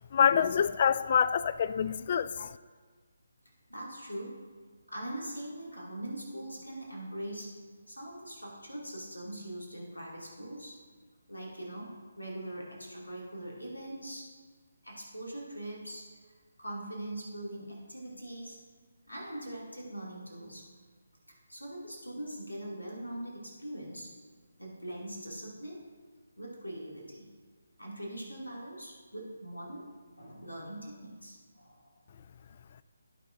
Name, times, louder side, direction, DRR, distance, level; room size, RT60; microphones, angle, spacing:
voice 1, 0.0-2.5, left 7 dB, 40° left, 0.3 m, -26 dB
voice 2, 3.7-4.3 4.9-7.5 7.9-10.8 11.3-14.3 14.8-16.1 16.6-18.6 19.1-20.6 21.3-24.1 24.6-25.8 26.4-27.3 27.8-29.8 30.2-31.9, right 1 dB, 90° left, 2.4 m, -42 dB
17.0 x 5.6 x 2.6 m
figure-of-eight pair, 145°, 0 cm